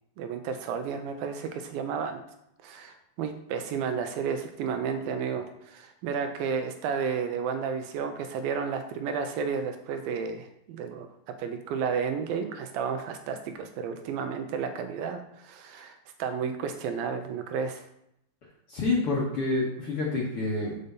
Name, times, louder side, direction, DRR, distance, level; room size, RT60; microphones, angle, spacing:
voice 1, 0.2-2.2 2.6-11.1 11.4-17.9, right 6 dB, 80° right, 6 dB, 2.4 m, -32 dB
voice 2, 18.7-20.8, left 2 dB, 50° left, -4 dB, 1.9 m, -28 dB
6.7 x 5.3 x 7.0 m, 0.76 s
omnidirectional pair, 4.4 m